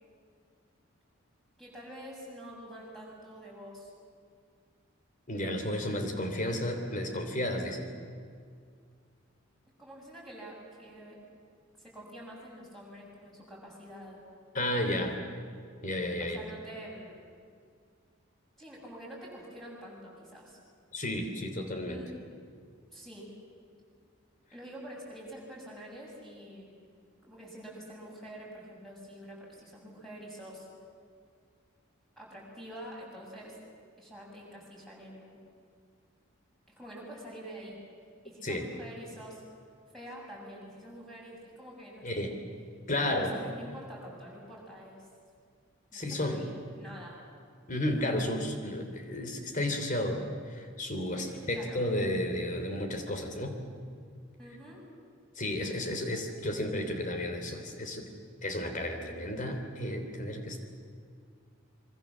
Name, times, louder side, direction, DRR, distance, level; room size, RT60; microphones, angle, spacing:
voice 1, 1.6-3.9 9.8-11.2 11.8-14.2 16.2-17.2 18.6-20.6 21.9-22.1 22.9-23.3 24.5-26.7 27.2-30.7 32.2-33.6 34.0-35.4 36.8-37.8 38.2-39.4 39.9-42.4 42.9-45.1 45.9-47.2 51.2-51.8 54.4-54.8, equal, ahead, -4 dB, 7.8 m, -46 dB
voice 2, 5.3-7.9 14.5-15.2 15.8-16.4 20.9-22.0 38.4-38.6 42.0-42.3 42.9-43.3 45.9-46.4 47.7-53.6 55.3-58.0 58.4-60.6, left 1 dB, 40° left, 5 dB, 3.3 m, -32 dB
26.0 x 24.0 x 7.4 m, 2.1 s
head